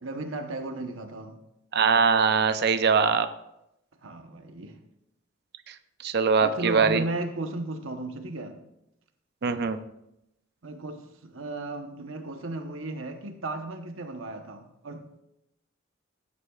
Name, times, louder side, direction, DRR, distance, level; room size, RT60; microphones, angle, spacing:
voice 1, 0.0-1.4 4.0-4.8 6.4-8.6 9.4-9.7 10.6-15.2, right 2 dB, 80° right, 1.0 m, -35 dB
voice 2, 1.7-3.3 6.0-7.0 9.4-9.8, right 5 dB, 55° right, 0.6 m, -22 dB
15.5 x 9.8 x 2.4 m
head